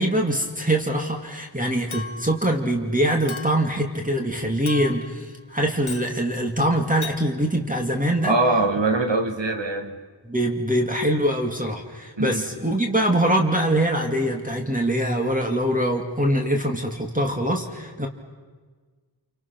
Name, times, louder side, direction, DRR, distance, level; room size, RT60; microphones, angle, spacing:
voice 1, 0.0-8.4 10.2-18.1, right 1 dB, 15° right, 2 dB, 2.3 m, -23 dB
Chink clink, 1.9-2.4 3.3-3.7 4.7-5.2 5.9-6.1 7.0-7.2, left 4 dB, 90° left, 1.4 m, -36 dB
voice 2, 8.2-10.0 12.2-12.4, right 2 dB, 65° right, 5 dB, 2.4 m, -22 dB
28.0 x 25.0 x 6.0 m, 1.4 s
wide cardioid pair, 45°, 46 cm